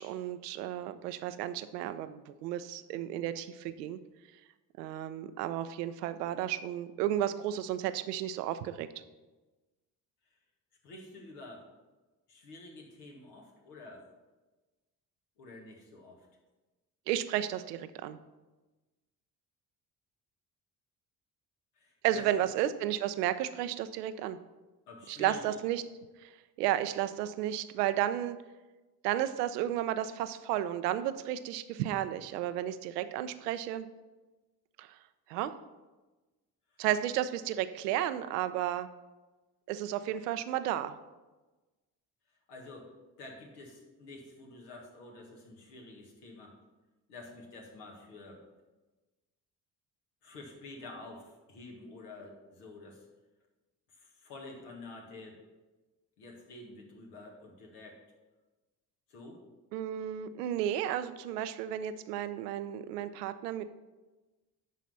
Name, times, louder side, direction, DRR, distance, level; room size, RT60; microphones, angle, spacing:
voice 1, 0.0-4.0 4.8-8.9 17.1-18.2 22.0-24.4 25.1-25.8 26.6-28.4 29.0-33.9 34.8-34.9 35.3-35.5 36.8-38.9 39.7-41.0 59.7-63.6, right 12 dB, 75° right, 12 dB, 0.6 m, -33 dB
voice 2, 10.8-11.7 12.3-14.1 15.4-16.3 21.8-22.3 24.9-25.6 36.7-36.9 42.5-42.9 43.2-46.5 47.1-48.4 50.2-53.1 53.9-55.4 56.2-58.0 59.1-59.4, left 2 dB, 80° left, 1 dB, 1.6 m, -49 dB
10.5 x 4.1 x 5.4 m, 1.2 s
figure-of-eight pair, 50°, 48 cm